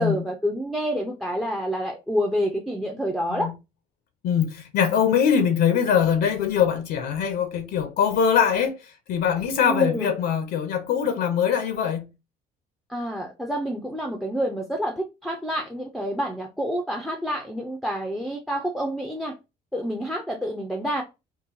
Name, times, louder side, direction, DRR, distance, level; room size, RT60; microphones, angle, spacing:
voice 1, 0.0-3.5 9.7-10.1 12.9-19.3 19.7-21.0, equal, ahead, 0.5 m, -28 dB
voice 2, 4.2-12.1, left 8 dB, 70° left, 0.7 m, -22 dB
3.8 x 2.2 x 2.6 m
cardioid pair, 110°, 17 cm